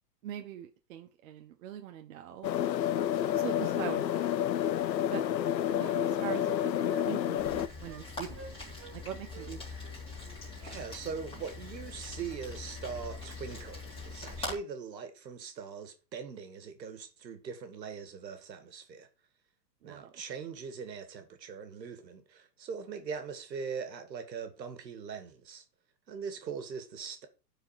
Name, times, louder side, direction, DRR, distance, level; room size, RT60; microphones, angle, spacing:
voice 1, 0.2-2.5 3.3-4.5 5.1-5.2 5.7-9.6 19.8-20.2, right 10 dB, 55° right, 1.1 m, -42 dB
sound 1, 2.4-7.7, left 11 dB, 90° left, 0.8 m, -29 dB
Wind instrument woodwind instrument, 5.2-6.6 6.9-7.1 7.4-7.5 7.9-8.1 8.3-9.0 9.3-11.2, right 7 dB, 30° right, 1.4 m, -50 dB
Rain, 7.4-14.5, left 3 dB, 10° left, 3.6 m, -43 dB
voice 2, 10.5-19.1 19.8-25.6 26.1-27.3, right 6 dB, 85° right, 2.2 m, -41 dB
12.0 x 4.8 x 4.9 m
hypercardioid pair, 135°, 49 cm